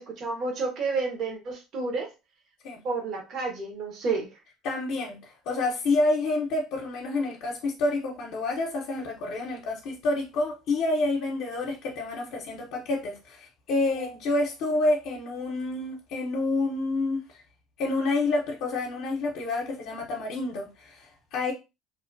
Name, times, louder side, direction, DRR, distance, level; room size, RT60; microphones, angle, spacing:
voice 1, 0.0-2.1 2.8-4.3, right 4 dB, 50° right, 1.0 m, -30 dB
voice 2, 4.6-17.2 17.8-21.5, left 2 dB, 70° left, 0.6 m, -28 dB
2.8 x 2.1 x 2.5 m
supercardioid pair, 115°, 0 cm